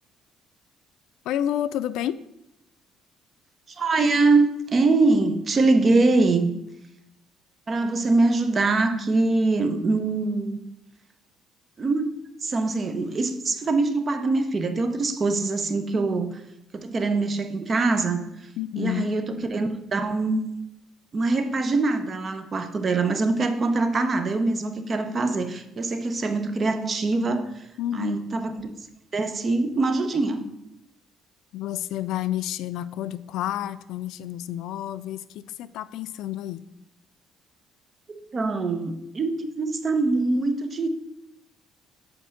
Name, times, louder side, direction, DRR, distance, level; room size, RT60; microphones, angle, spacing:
voice 1, 1.3-2.2 18.6-19.1 27.8-28.2 31.5-36.6, left 12 dB, 80° left, 15 dB, 0.4 m, -30 dB
voice 2, 3.7-6.5 7.7-10.6 11.8-16.4 16.7-18.3 18.8-20.4 21.1-27.6 27.9-28.7 29.1-30.5 38.1-40.9, right 3 dB, 30° right, 8 dB, 0.8 m, -23 dB
8.0 x 4.4 x 6.4 m, 0.85 s
cardioid pair, 150°, 0 cm